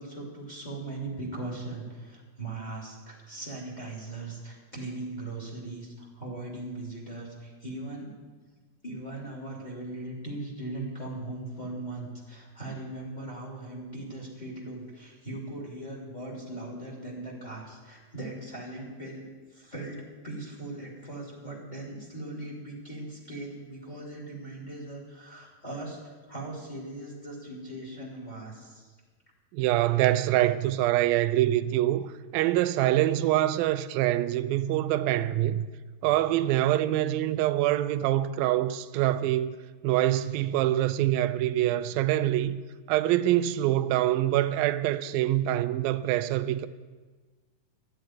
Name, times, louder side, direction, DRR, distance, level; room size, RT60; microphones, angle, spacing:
voice 1, 0.0-8.1 8.8-20.0 20.2-28.9, right 2 dB, 10° left, 3.2 m, -39 dB
voice 2, 29.5-35.7 36.0-39.6 39.8-42.6 42.9-46.7, right 14 dB, 90° right, 2.4 m, -25 dB
13.0 x 9.0 x 9.4 m
omnidirectional pair, 4.0 m